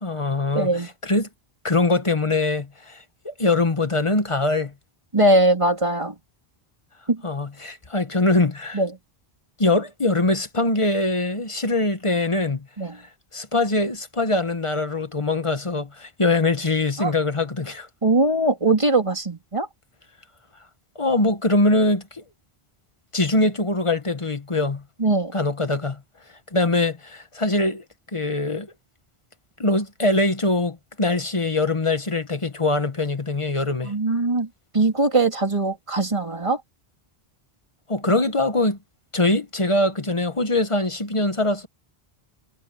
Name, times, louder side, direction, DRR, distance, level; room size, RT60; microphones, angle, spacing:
voice 1, 0.0-1.3 1.6-4.7 7.2-8.8 9.6-12.7 13.3-17.9 20.9-22.2 23.1-24.8 25.3-26.0 26.5-27.8 28.1-28.7 29.6-33.9 37.9-38.8 39.1-41.7, left 2 dB, 30° left, 1.3 m, -23 dB
voice 2, 0.5-0.9 5.1-6.1 7.1-7.2 8.7-8.9 12.8-13.0 17.0-17.1 18.0-19.7 25.0-25.3 33.8-34.5 34.7-36.6, right 2 dB, 30° right, 2.8 m, -21 dB
omnidirectional pair, 1.1 m